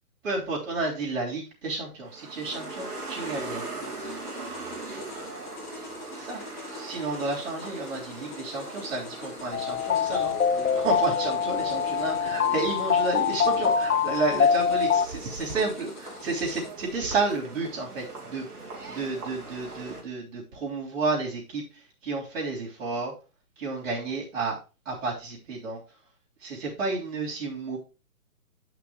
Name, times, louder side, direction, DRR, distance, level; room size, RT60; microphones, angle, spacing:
voice 1, 0.2-3.6 6.1-23.1 23.6-24.6 24.9-25.8 26.4-27.8, right 3 dB, 55° right, -6 dB, 3.5 m, -31 dB
sound 1, 2.1-20.0, right 3 dB, 80° right, 2.9 m, -41 dB
sound 2, 2.4-16.7, left 5 dB, 30° left, 1.8 m, -45 dB
sound 3, 9.5-15.1, left 7 dB, 65° left, 1.3 m, -24 dB
9.0 x 6.0 x 3.2 m, 0.31 s
hypercardioid pair, 155°, 45 cm